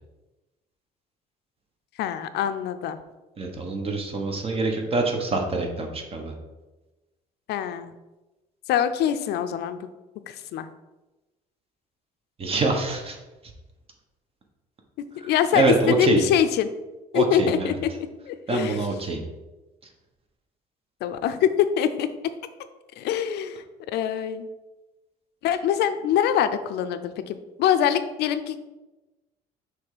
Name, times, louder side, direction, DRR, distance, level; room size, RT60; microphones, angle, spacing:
voice 1, 2.0-3.0 7.5-7.9 8.7-9.8 10.3-10.7 15.2-16.7 17.1-18.9 21.0-22.1 23.0-23.6 23.9-24.5 25.4-28.6, left 9 dB, 75° left, 10 dB, 0.5 m, -24 dB
voice 2, 3.4-6.3 12.4-13.2 15.5-16.2 17.1-17.8 18.5-19.2, right 3 dB, 35° right, 3 dB, 1.2 m, -25 dB
6.1 x 3.3 x 4.9 m, 1.1 s
cardioid pair, 110°, 17 cm